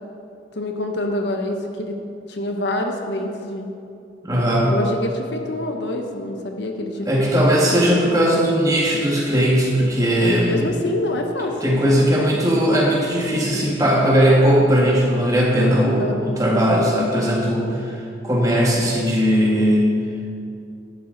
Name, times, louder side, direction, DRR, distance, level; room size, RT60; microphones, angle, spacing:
voice 1, 0.5-2.0 2.3-3.7 4.6-7.1 7.3-7.5 10.4-12.0 15.9-16.2, left 1 dB, 60° left, 3 dB, 0.9 m, -26 dB
voice 2, 4.2-4.7 7.1-10.6 11.6-19.9, equal, 20° right, -3 dB, 1.8 m, -18 dB
11.5 x 11.0 x 4.0 m, 2.6 s
head